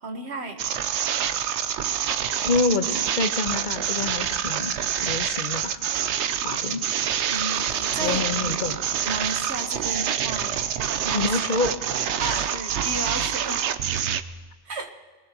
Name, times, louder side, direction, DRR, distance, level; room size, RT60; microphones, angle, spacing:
voice 1, 0.0-0.7 7.3-8.8 9.1-10.7 11.0-11.3 12.2-13.7 14.7-14.9, right 3 dB, 70° right, 4 dB, 1.7 m, -33 dB
sound 1, 0.6-14.2, right 9 dB, 85° right, 1.0 m, -26 dB
voice 2, 2.4-4.7 5.0-5.8 6.4-6.8 8.0-9.1 11.1-11.7 12.2-12.4, left 4 dB, 45° left, 8 dB, 1.0 m, -27 dB
24.0 x 18.5 x 3.0 m, 1.4 s
omnidirectional pair, 1.1 m